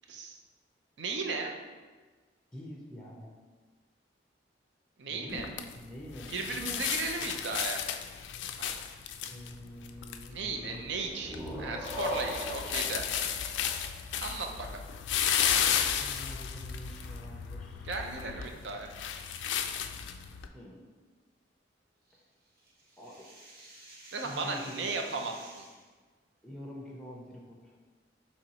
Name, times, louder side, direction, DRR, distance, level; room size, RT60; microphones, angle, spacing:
voice 1, 1.0-1.5 5.0-5.5 6.3-7.8 8.6-8.7 10.3-13.1 14.2-14.9 17.8-18.9 24.1-25.7, right 3 dB, 75° right, 3 dB, 0.5 m, -36 dB
voice 2, 2.5-3.3 5.1-7.3 9.3-11.0 15.6-17.9 20.5-20.8 23.0-23.3 24.2-24.9 25.4-25.5 26.4-27.8, equal, 5° left, -2 dB, 0.5 m, -46 dB
sound 1, 5.3-20.5, left 8 dB, 80° left, 0.3 m, -34 dB
sound 2, 10.9-14.5, equal, 15° right, 0.9 m, -39 dB
sound 3, 22.1-25.9, right 2 dB, 55° right, 0.9 m, -52 dB
5.0 x 3.1 x 2.8 m, 1.4 s
head